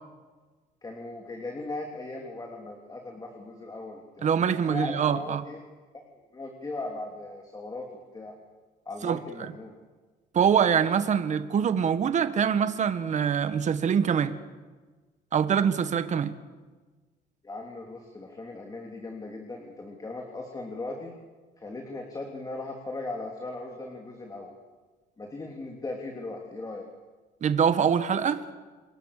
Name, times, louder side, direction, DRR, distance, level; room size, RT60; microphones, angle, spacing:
voice 1, 0.8-4.3 4.7-5.6 6.1-8.3 8.8-9.7 17.4-21.2 21.6-24.5 25.2-26.9, left 2 dB, 20° left, 2 dB, 3.3 m, -38 dB
voice 2, 4.2-5.4 9.0-9.5 10.3-14.4 15.3-16.3 27.4-28.4, right 7 dB, 45° right, 11 dB, 1.6 m, -24 dB
28.5 x 22.0 x 6.8 m, 1.3 s
cardioid pair, 110°, 17 cm